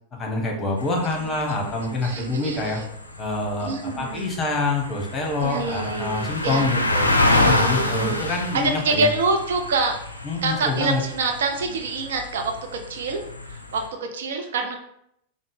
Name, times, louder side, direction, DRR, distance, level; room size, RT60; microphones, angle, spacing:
voice 1, 0.2-2.8 3.2-7.1 7.4-9.1 10.2-11.0, left 2 dB, 20° left, 0 dB, 0.9 m, -26 dB
sound 1, 0.8-13.9, left 2 dB, 85° left, 0.4 m, -28 dB
voice 2, 1.2-1.7 2.0-2.9 3.6-4.3 5.4-6.7 7.3-10.0 10.4-13.2 13.5-14.8, right 3 dB, 60° right, 4 dB, 0.4 m, -26 dB
3.7 x 2.0 x 3.4 m, 0.73 s
figure-of-eight pair, 90°, 0 cm